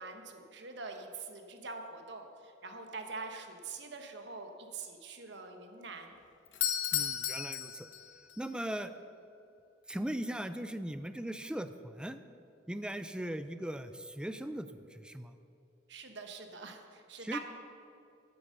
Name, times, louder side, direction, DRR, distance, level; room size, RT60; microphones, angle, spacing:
voice 1, 0.0-6.1 15.9-17.4, right 4 dB, 70° right, 5 dB, 1.2 m, -44 dB
Doorbell, 6.5-8.4, left 10 dB, 75° left, 0.9 m, -34 dB
voice 2, 6.9-7.9 8.4-8.9 9.9-12.2 12.7-15.3 17.2-17.4, right 1 dB, 5° right, 10 dB, 0.4 m, -39 dB
9.3 x 8.8 x 6.6 m, 2.6 s
head